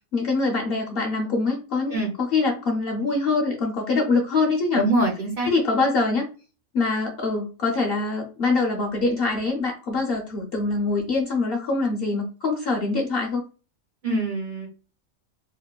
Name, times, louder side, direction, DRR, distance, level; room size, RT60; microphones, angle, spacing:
voice 1, 0.1-4.8 5.4-6.3 6.7-13.4, left 3 dB, 60° left, 0 dB, 0.6 m, -24 dB
voice 2, 4.8-5.5 14.0-14.7, right 1 dB, 55° right, -1 dB, 0.6 m, -24 dB
2.9 x 2.1 x 2.2 m, 0.35 s
omnidirectional pair, 1.4 m